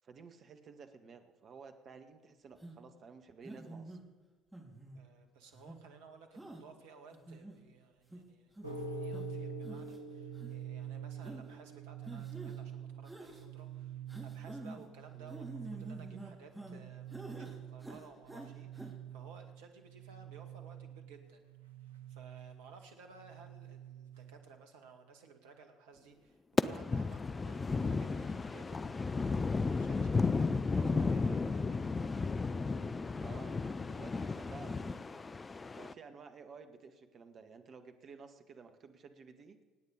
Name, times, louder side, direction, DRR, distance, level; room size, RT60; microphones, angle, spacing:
voice 1, 0.0-4.0 15.1-15.4 30.8-31.2 33.2-33.6 33.9-39.6, right 5 dB, 45° right, 7 dB, 1.8 m, -53 dB
sound 1, 2.6-2.8 3.4-4.0 4.5-5.0 5.5-5.8 6.4-6.6 7.1-7.6 8.1-8.2 8.6-8.8 9.1-9.2 9.6-10.0 10.3-10.5 11.2-11.4 12.0-12.6 13.0-13.4 14.1-14.8 15.3-16.8 17.1-17.5 17.8-18.5 18.7-18.9, right 1 dB, 5° right, 4.2 m, -47 dB
voice 2, 4.9-8.5 9.0-21.5 21.8-31.9, right 5 dB, 70° right, 5 dB, 2.1 m, -57 dB
sound 2, 8.6-24.5, right 6 dB, 85° right, 1.3 m, -46 dB
sound 3, 26.6-35.9, left 4 dB, 25° left, 0.6 m, -33 dB
25.5 x 9.4 x 5.1 m, 1.4 s
figure-of-eight pair, 55°, 0 cm